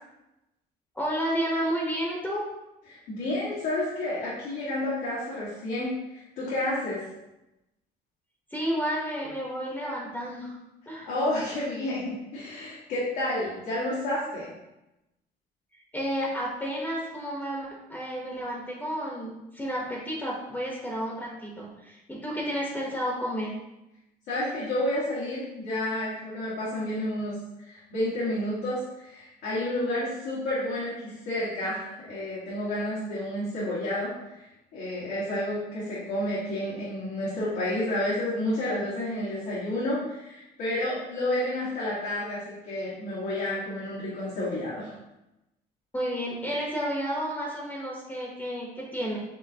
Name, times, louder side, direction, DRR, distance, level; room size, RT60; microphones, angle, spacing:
voice 1, 0.9-2.4 8.5-10.6 10.9-11.1 15.9-23.5 45.9-49.2, equal, 10° left, -3 dB, 0.8 m, -31 dB
voice 2, 2.9-7.0 11.0-14.5 24.3-34.1 34.4-34.5 34.7-44.9, left 1 dB, 90° left, -9 dB, 1.4 m, -30 dB
5.3 x 3.3 x 2.7 m, 0.94 s
cardioid pair, 110°, 17 cm